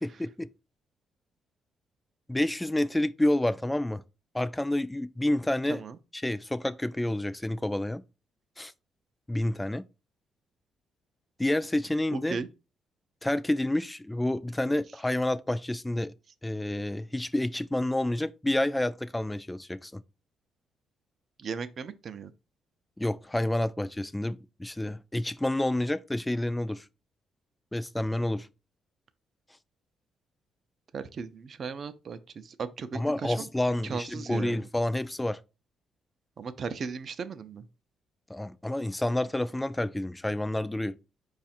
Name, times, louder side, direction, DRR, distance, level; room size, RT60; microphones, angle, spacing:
voice 1, 0.0-0.5 2.3-4.0 4.3-5.8 6.1-8.0 8.6-8.7 9.3-9.8 11.4-12.4 13.2-16.1 16.4-20.0 23.0-26.9 27.7-28.5 32.9-35.4 38.3-40.9, left 1 dB, 10° left, 0.3 m, -29 dB
voice 2, 12.1-12.5 21.4-22.3 30.9-34.7 36.4-37.7, right 5 dB, 50° right, 0.5 m, -37 dB
4.9 x 2.4 x 4.2 m
cardioid pair, 90°, 0 cm